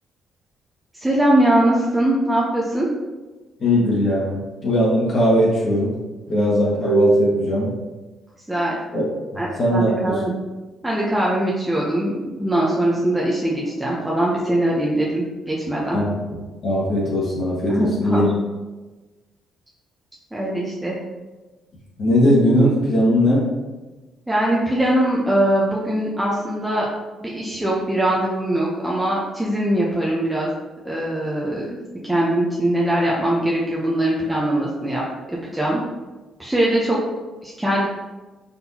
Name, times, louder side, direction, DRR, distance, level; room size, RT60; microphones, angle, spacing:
voice 1, 0.9-2.9 8.5-8.8 9.4-10.3 10.8-16.0 17.7-18.3 20.3-21.0 24.3-26.9 27.2-30.5 30.8-31.8 32.0-35.8 36.4-37.0 37.4-37.9, right 1 dB, 10° right, -5 dB, 0.7 m, -21 dB
voice 2, 3.6-6.0 6.3-7.7 8.9-9.0 9.3-10.2 15.9-16.2 16.6-18.2 22.0-23.5, equal, 50° left, -5 dB, 1.3 m, -19 dB
4.2 x 3.8 x 2.8 m, 1.2 s
cardioid pair, 90°, 0 cm